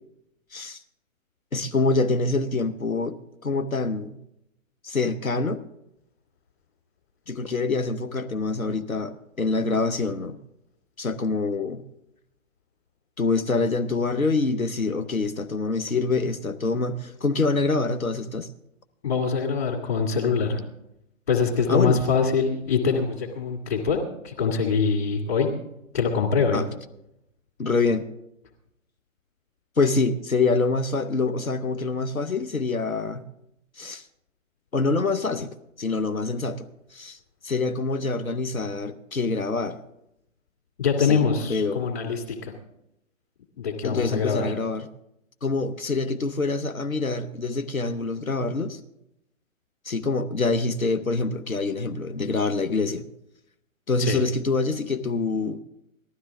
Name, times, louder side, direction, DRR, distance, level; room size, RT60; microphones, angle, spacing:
voice 1, 1.5-4.2 4.8-5.6 7.3-10.4 11.0-11.8 13.2-18.5 21.7-22.0 26.5-26.6 27.6-28.0 29.8-33.2 33.8-34.0 34.7-35.5 35.8-37.2 37.4-39.8 41.0-41.8 43.8-44.9 45.4-48.8 49.8-53.1 53.9-55.6, left 3 dB, 85° left, 10 dB, 0.9 m, -25 dB
voice 2, 19.0-20.6 21.3-24.0 24.2-25.5 25.9-26.6 40.8-42.5 43.6-44.5 54.0-54.2, left 5 dB, 45° left, 0 dB, 2.3 m, -24 dB
18.5 x 13.0 x 3.6 m, 0.83 s
figure-of-eight pair, 130°, 41 cm